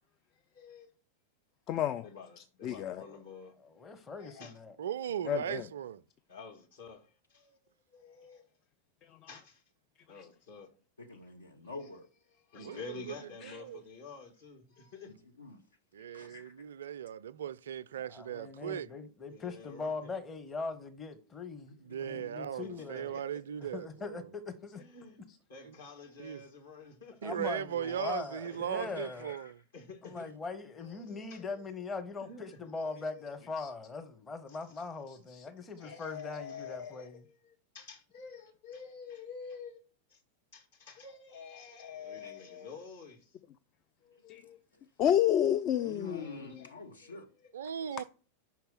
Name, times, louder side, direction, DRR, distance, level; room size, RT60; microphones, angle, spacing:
voice 1, 0.3-0.9 2.0-3.5 4.2-4.6 6.3-7.6 7.9-8.5 9.3-9.6 10.1-10.7 11.8-11.9 12.5-15.1 19.3-20.1 22.6-23.4 24.7-25.2 25.5-27.5 28.4-28.9 29.7-30.3 30.8-31.6 32.2-33.4 34.5-34.6 35.6-39.8 40.1-40.2 40.5-43.4 44.0-44.6 45.7-46.7 47.0-47.5 47.8-47.9, left 5 dB, 60° left, 2.0 m, -49 dB
voice 2, 1.7-2.1 2.4-3.0 5.3-5.7 9.0-9.2 10.2-10.3 13.4-13.6 33.6-33.7 35.3-35.4 35.8-35.9 44.3-44.4 45.0-46.3, left 10 dB, 35° left, 0.4 m, -30 dB
voice 3, 3.6-4.7 18.1-23.1 23.7-24.8 27.2-29.3 30.0-37.2, left 4 dB, 20° left, 0.9 m, -41 dB
voice 4, 4.8-6.0 12.6-13.1 13.4-13.8 15.9-18.9 21.8-24.3 25.6-25.8 26.2-26.4 27.2-29.6 47.5-48.0, right 9 dB, 65° right, 0.3 m, -38 dB
voice 5, 11.0-12.1 15.1-15.6 16.1-16.6 21.6-22.3 27.8-28.3 28.9-29.5 42.2-42.3 44.4-44.8 45.8-47.3, left 3 dB, 75° left, 1.1 m, -48 dB
5.8 x 4.4 x 5.6 m
figure-of-eight pair, 90°, 0 cm